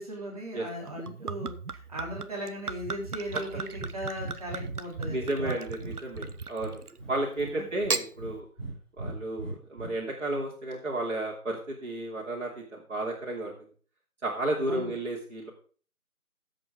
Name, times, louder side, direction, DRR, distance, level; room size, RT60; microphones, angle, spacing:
voice 1, 0.0-5.6 7.5-7.7 14.6-14.9, equal, 25° right, -3 dB, 3.2 m, -38 dB
Gurgling / Chink clink / Liquid, 0.9-7.0 7.7-8.1, right 5 dB, 85° right, 1.0 m, -37 dB
Breathing, 3.7-4.3 4.6-4.7 5.0-6.3 6.6-7.5 7.8-8.7 9.0-9.9, right 2 dB, ahead, 5.8 m, -38 dB
voice 2, 5.1-6.8 7.1-8.4 9.0-13.5 14.2-15.5, right 1 dB, 55° right, -3 dB, 3.0 m, -32 dB
15.0 x 7.9 x 3.7 m, 0.41 s
figure-of-eight pair, 170°, 44 cm